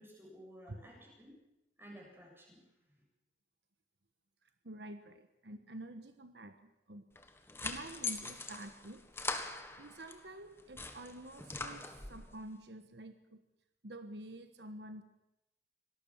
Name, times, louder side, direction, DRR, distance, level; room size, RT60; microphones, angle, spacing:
voice 1, 0.0-1.4 1.8-2.6, equal, 15° right, -1 dB, 7.4 m, -54 dB
voice 2, 4.6-7.1 7.6-13.4 13.8-15.0, right 1 dB, 75° right, 8 dB, 1.3 m, -49 dB
sound 1, 7.1-10.2 10.6-12.3, left 3 dB, 15° left, 1.6 m, -42 dB
25.5 x 18.5 x 7.4 m, 0.90 s
head